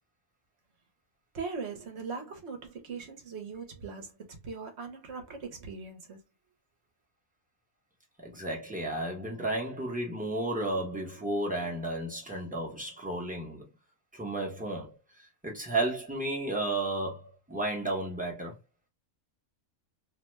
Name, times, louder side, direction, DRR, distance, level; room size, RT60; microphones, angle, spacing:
voice 1, 1.3-4.2 4.4-6.2, right 5 dB, 60° right, 1.0 m, -40 dB
voice 2, 8.2-13.7 14.1-18.6, right 2 dB, 10° right, 0.7 m, -33 dB
2.7 x 2.1 x 3.1 m
omnidirectional pair, 1.4 m